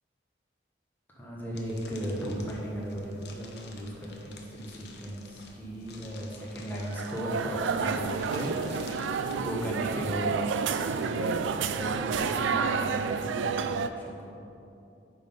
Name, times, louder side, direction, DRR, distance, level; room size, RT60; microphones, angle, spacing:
voice 1, 1.1-14.3, equal, 10° left, -5 dB, 1.3 m, -36 dB
sound 1, 1.5-9.3, left 3 dB, 60° left, 0.9 m, -51 dB
sound 2, 6.9-13.9, right 5 dB, 85° right, 0.4 m, -30 dB
9.6 x 3.9 x 5.5 m, 2.6 s
head